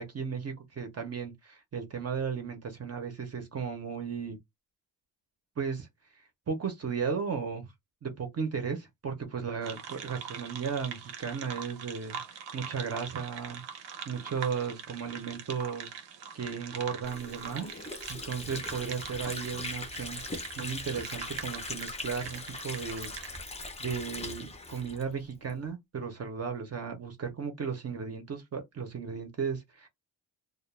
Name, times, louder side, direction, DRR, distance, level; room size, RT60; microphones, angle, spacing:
voice 1, 0.0-4.4 5.6-5.9 6.2-7.6 8.0-13.6 14.1-15.9 16.3-17.7 18.1-20.2 20.6-23.1 23.8-29.9, right 6 dB, 35° right, 0.6 m, -35 dB
sound 1, 9.6-23.4, right 7 dB, 90° right, 0.7 m, -43 dB
Water / Sink (filling or washing), 17.0-25.6, left 2 dB, 15° left, 0.5 m, -40 dB
2.2 x 2.1 x 3.0 m
wide cardioid pair, 140°, 42 cm